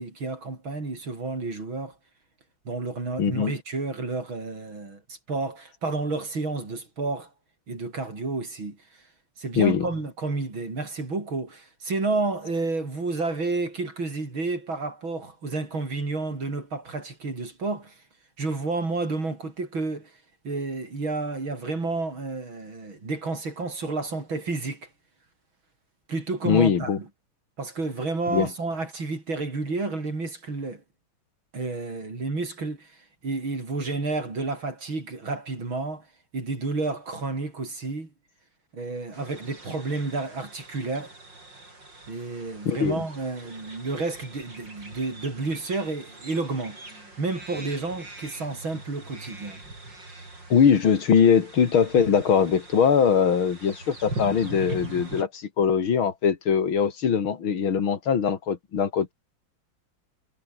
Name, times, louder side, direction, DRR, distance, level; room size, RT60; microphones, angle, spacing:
voice 1, 0.0-1.9 2.7-7.3 7.7-8.8 9.4-18.0 18.4-20.1 20.4-24.9 26.1-27.1 27.6-30.8 31.5-36.1 36.3-38.1 38.7-41.1 42.1-49.6, right 3 dB, 75° right, 6.4 m, -30 dB
voice 2, 3.2-3.5 9.6-9.9 26.4-27.0 28.3-28.5 42.6-43.0 50.5-59.1, left 7 dB, 85° left, 3.0 m, -21 dB
sound 1, 39.1-55.2, right 2 dB, 60° right, 8.3 m, -42 dB
omnidirectional pair, 2.2 m